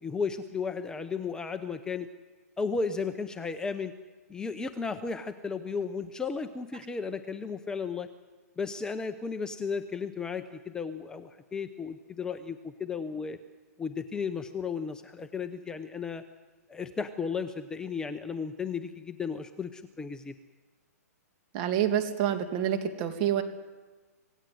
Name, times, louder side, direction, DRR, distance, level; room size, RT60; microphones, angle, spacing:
voice 1, 0.0-2.1 2.6-3.9 4.3-8.1 8.6-13.4 13.8-16.2 16.7-20.3, left 5 dB, 10° left, 8 dB, 0.7 m, -34 dB
voice 2, 21.5-23.4, right 10 dB, 35° right, 6 dB, 2.5 m, -27 dB
26.5 x 18.5 x 7.8 m, 1.3 s
hypercardioid pair, 150°, 9 cm